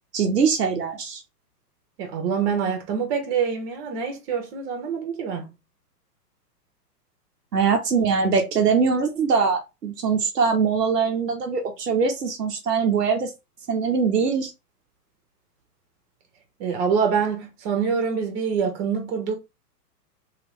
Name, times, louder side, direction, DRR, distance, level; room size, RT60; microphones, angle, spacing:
voice 1, 0.1-1.2 7.5-13.3 13.7-14.5, right 5 dB, 75° right, 1.1 m, -22 dB
voice 2, 2.0-5.5 16.6-19.3, right 6 dB, 40° right, 1.4 m, -25 dB
3.4 x 3.0 x 3.1 m
hypercardioid pair, 115°, 48 cm